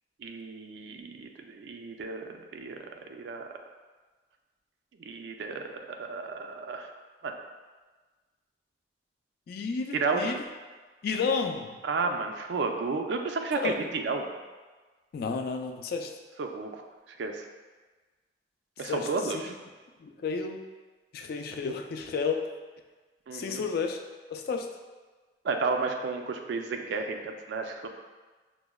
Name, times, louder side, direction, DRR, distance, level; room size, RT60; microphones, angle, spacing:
voice 1, 0.2-3.5 5.0-6.9 7.2-7.3 9.9-10.4 11.8-14.3 16.4-17.4 18.8-19.5 23.3-23.6 25.4-27.9, right 4 dB, 70° right, 4 dB, 0.3 m, -32 dB
voice 2, 9.5-10.4 11.0-11.8 13.5-13.8 15.1-16.1 18.8-19.3 20.0-20.6 21.1-22.4 23.3-24.0 24.3-24.7, left 5 dB, 60° left, 5 dB, 0.3 m, -31 dB
5.8 x 2.1 x 2.2 m, 1.3 s
head